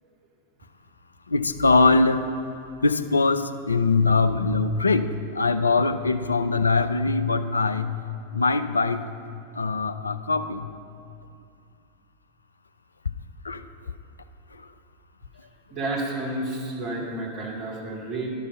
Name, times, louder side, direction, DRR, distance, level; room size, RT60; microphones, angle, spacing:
voice 1, 1.3-2.2 2.8-8.0 8.3-9.0 9.6-10.7 13.4-13.6, left 3 dB, 75° left, 9 dB, 0.4 m, -22 dB
voice 2, 15.7-18.3, right 2 dB, 25° right, -3 dB, 2.0 m, -30 dB
11.5 x 5.3 x 6.1 m, 2.4 s
figure-of-eight pair, 90°, 0 cm